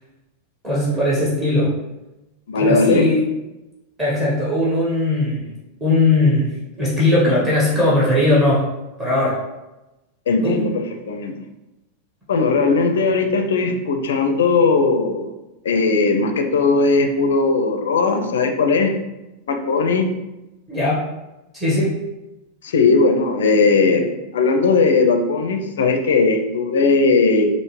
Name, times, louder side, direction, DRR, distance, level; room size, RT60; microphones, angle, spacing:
voice 1, 0.6-1.7 2.5-3.2 4.0-5.5 5.8-6.5 6.8-8.6 9.0-9.4 10.4-10.6 20.7-21.0 21.5-21.9, left 1 dB, 20° right, -8 dB, 1.2 m, -18 dB
voice 2, 2.5-3.1 10.3-11.4 12.3-15.3 15.6-19.0 19.5-20.1 22.6-24.1 24.3-27.5, left 4 dB, 65° left, 5 dB, 0.4 m, -18 dB
5.2 x 2.0 x 3.1 m, 1.0 s
figure-of-eight pair, 90°, 0 cm